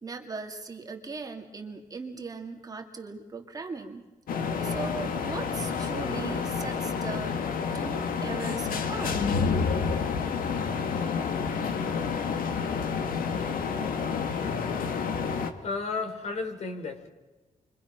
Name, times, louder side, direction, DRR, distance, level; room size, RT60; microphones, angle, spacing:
voice 1, 0.0-4.1 4.6-7.4 7.7-9.2, right 4 dB, 25° right, 2 dB, 2.4 m, -38 dB
sound 1, 4.3-15.5, left 5 dB, 80° left, 2.0 m, -29 dB
voice 2, 15.3-17.1, left 4 dB, 50° left, 5 dB, 3.5 m, -33 dB
29.0 x 24.5 x 6.1 m, 1.2 s
wide cardioid pair, 170°, 14 cm